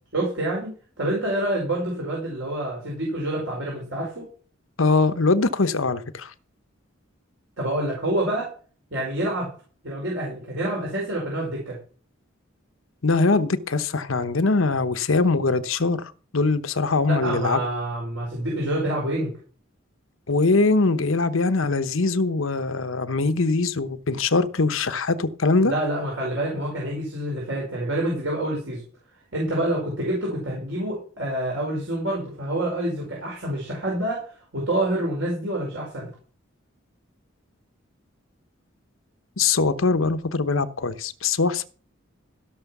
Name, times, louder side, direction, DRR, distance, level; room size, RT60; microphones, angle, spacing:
voice 1, 0.1-4.3 7.6-8.5 8.9-9.5 9.8-11.8 17.0-19.4 25.6-28.8 29.3-36.1, right 1 dB, 65° right, 5.1 m, -27 dB
voice 2, 4.8-6.3 13.0-17.6 20.3-25.7 39.4-41.6, left 3 dB, 80° left, 1.0 m, -22 dB
16.0 x 6.4 x 6.0 m
head